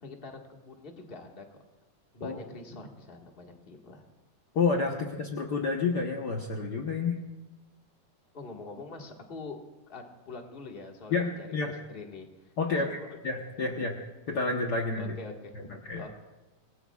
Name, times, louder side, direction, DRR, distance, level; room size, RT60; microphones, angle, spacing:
voice 1, 0.0-1.4 2.1-4.0 8.3-9.6 9.9-13.2 13.6-13.8 15.0-16.1, left 3 dB, 25° left, 1 dB, 1.2 m, -45 dB
voice 2, 4.5-7.2 11.1-11.7 12.6-13.0 13.2-13.9 14.3-15.1 15.8-16.1, left 4 dB, 65° left, 1 dB, 1.0 m, -29 dB
27.5 x 20.5 x 2.4 m, 1.1 s
omnidirectional pair, 3.6 m